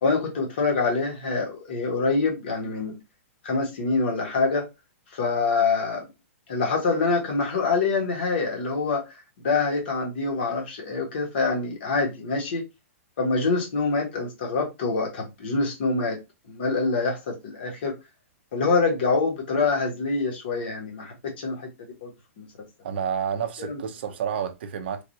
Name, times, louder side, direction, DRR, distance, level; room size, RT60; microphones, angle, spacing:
voice 1, 0.0-3.0 3.4-4.7 5.1-6.0 6.5-9.0 9.4-12.6 13.2-16.2 16.5-17.9 18.5-21.7 22.0-22.1 22.4-22.5 23.6-23.8, left 4 dB, 45° left, 1.3 m, -25 dB
voice 2, 22.8-25.0, right 8 dB, 45° right, 0.5 m, -29 dB
3.2 x 2.6 x 2.6 m
hypercardioid pair, 180°, 8 cm